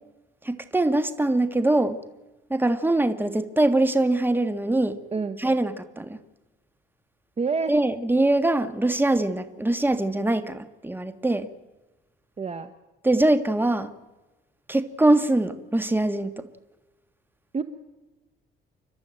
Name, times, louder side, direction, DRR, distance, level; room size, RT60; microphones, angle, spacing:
voice 1, 0.4-2.0 2.5-5.0 5.4-6.2 7.7-11.5 13.0-13.9 14.7-16.5, right 2 dB, 10° right, 1.6 m, -23 dB
voice 2, 7.4-7.7 12.4-12.7 17.5-17.6, right 4 dB, 30° right, 1.2 m, -27 dB
29.5 x 12.5 x 8.9 m
cardioid pair, 90°, 20 cm